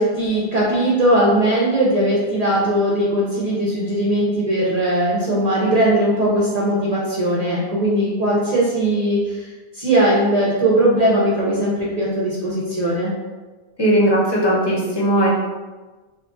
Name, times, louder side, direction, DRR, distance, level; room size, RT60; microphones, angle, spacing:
voice 1, 0.0-13.1, right 1 dB, 45° right, -6 dB, 0.6 m, -19 dB
voice 2, 13.8-15.3, right 1 dB, 25° left, -5 dB, 0.7 m, -17 dB
2.9 x 2.3 x 3.6 m, 1.3 s
omnidirectional pair, 1.0 m